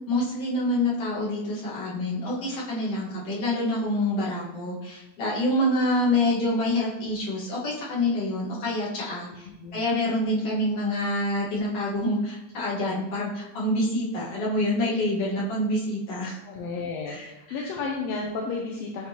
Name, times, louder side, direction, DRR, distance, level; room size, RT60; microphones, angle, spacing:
voice 1, 0.1-16.4 17.1-17.7, left 1 dB, 60° left, -7 dB, 2.5 m, -27 dB
voice 2, 9.4-9.9 16.4-19.1, left 4 dB, 75° left, -1 dB, 1.6 m, -32 dB
8.6 x 3.8 x 2.9 m, 0.90 s
omnidirectional pair, 3.3 m